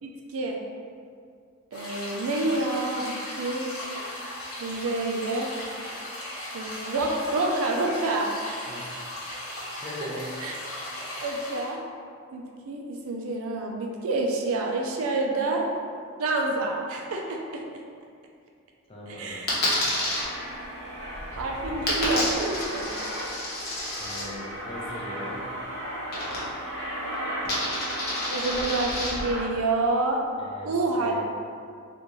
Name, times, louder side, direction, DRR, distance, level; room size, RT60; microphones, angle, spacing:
voice 1, 0.0-0.6 1.7-3.7 4.6-5.5 6.5-8.7 10.4-10.5 11.2-11.8 12.3-15.6 16.2-17.6 19.1-19.5 21.3-23.0 28.3-30.2 30.6-31.1, right 2 dB, 75° right, 0 dB, 0.4 m, -28 dB
sound 1, 1.7-11.7, left 1 dB, 75° left, 1.0 m, -37 dB
voice 2, 8.7-9.1 9.8-10.4 18.9-19.5 24.0-25.6 30.4-31.3, left 1 dB, 25° left, -4 dB, 0.4 m, -40 dB
Coin (dropping), 19.5-20.2 21.9-24.2 26.1-26.7 27.0-29.1, left 1 dB, 45° left, 0.9 m, -30 dB
Aircraft, 20.1-29.5, equal, 50° right, 0.8 m, -35 dB
3.6 x 2.5 x 3.0 m, 2.2 s
head